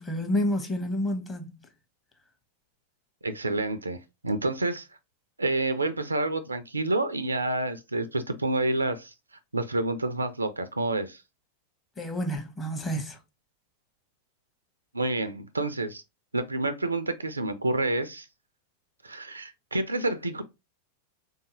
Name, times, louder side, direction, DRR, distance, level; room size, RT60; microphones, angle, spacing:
voice 1, 0.0-1.5 12.0-13.2, equal, 15° left, 0.9 m, -29 dB
voice 2, 3.2-4.9 5.4-9.1 9.5-11.2 14.9-16.0 16.3-18.3 19.0-20.4, right 2 dB, 80° right, 0.4 m, -28 dB
3.6 x 2.7 x 2.7 m
figure-of-eight pair, 90°, 0 cm